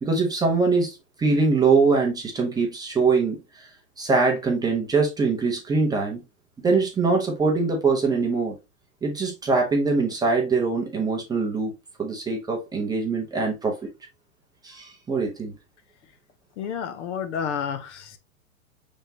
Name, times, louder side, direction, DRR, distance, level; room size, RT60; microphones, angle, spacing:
voice 1, 0.0-3.7 4.0-6.2 6.6-8.5 9.0-11.7 12.0-13.8 14.6-15.5, right 4 dB, 10° right, 0.7 m, -23 dB
voice 2, 16.6-18.2, left 7 dB, 55° left, 0.8 m, -30 dB
5.2 x 3.6 x 2.7 m
hypercardioid pair, 125°, 42 cm